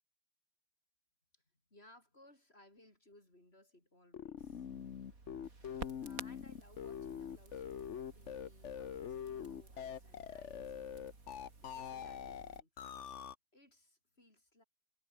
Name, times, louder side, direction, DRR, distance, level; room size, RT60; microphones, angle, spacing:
voice 1, 1.7-4.7 5.8-10.7 11.6-12.9 13.5-14.6, left 1 dB, 25° left, 6.2 m, -63 dB
sound 1, 4.1-13.3, left 8 dB, 50° left, 0.8 m, -44 dB
Crackle, 4.4-12.6, right 3 dB, 40° right, 4.2 m, -53 dB
omnidirectional pair, 2.4 m